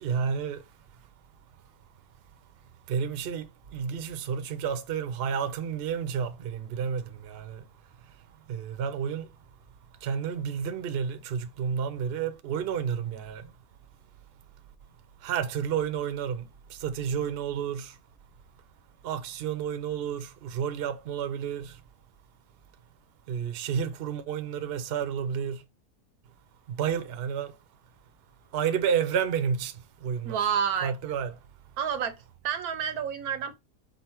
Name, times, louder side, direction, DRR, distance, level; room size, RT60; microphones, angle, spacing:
voice 1, 0.0-0.6 2.9-3.5 3.7-7.6 8.5-9.3 10.0-13.4 15.2-16.4 16.8-17.9 19.0-21.7 23.3-25.6 26.8-27.5 28.5-29.7 30.0-30.4 30.8-31.3, right 7 dB, 60° right, 0.7 m, -30 dB
voice 2, 30.2-30.9 31.8-32.1 32.4-33.6, right 7 dB, 85° right, 1.2 m, -29 dB
5.2 x 2.1 x 4.3 m
omnidirectional pair, 1.5 m